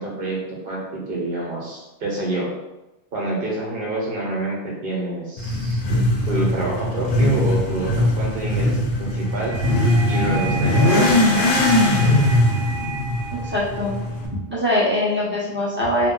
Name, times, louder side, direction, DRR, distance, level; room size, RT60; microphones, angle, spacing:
voice 1, 0.0-2.5 3.1-5.8 6.3-9.6 10.1-11.3 15.2-15.4, right 2 dB, 60° right, -3 dB, 1.1 m, -27 dB
Motorcycle / Accelerating revving vroom, 5.4-14.3, left 1 dB, 65° left, 0.7 m, -20 dB
sound 1, 9.2-14.2, right 2 dB, 80° left, 1.0 m, -31 dB
voice 2, 13.3-14.0 14.5-16.1, left 1 dB, 10° right, -8 dB, 0.8 m, -22 dB
2.8 x 2.1 x 3.8 m, 0.99 s
omnidirectional pair, 1.0 m